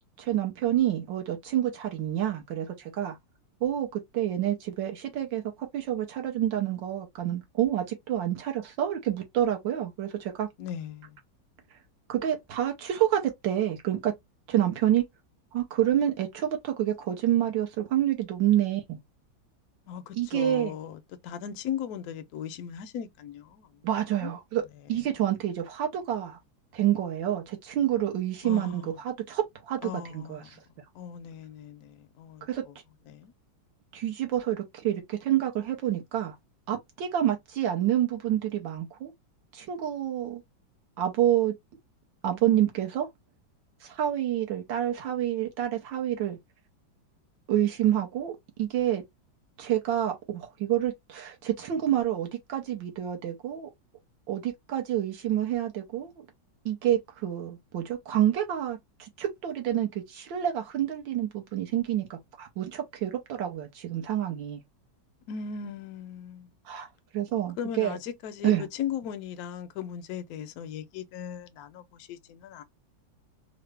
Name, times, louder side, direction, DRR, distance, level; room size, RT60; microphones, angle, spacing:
voice 1, 0.2-3.2 3.6-10.5 12.1-14.1 14.5-15.0 15.5-19.0 20.2-20.7 23.8-24.6 24.9-26.4 26.7-30.4 32.5-32.6 33.9-36.3 36.7-39.1 39.5-40.4 41.0-41.5 42.2-43.1 43.8-46.4 47.5-49.0 49.6-53.7 54.3-56.1 56.6-64.6 66.7-66.9 67.1-68.0 68.4-68.6, right 11 dB, 75° right, 1.5 m, -28 dB
voice 2, 10.6-11.2 19.9-23.8 24.2-24.3 28.4-28.9 29.8-30.5 30.9-32.7 33.1-33.3 65.3-66.5 67.6-72.6, left 8 dB, 70° left, 0.9 m, -38 dB
3.8 x 2.0 x 3.3 m
omnidirectional pair, 2.1 m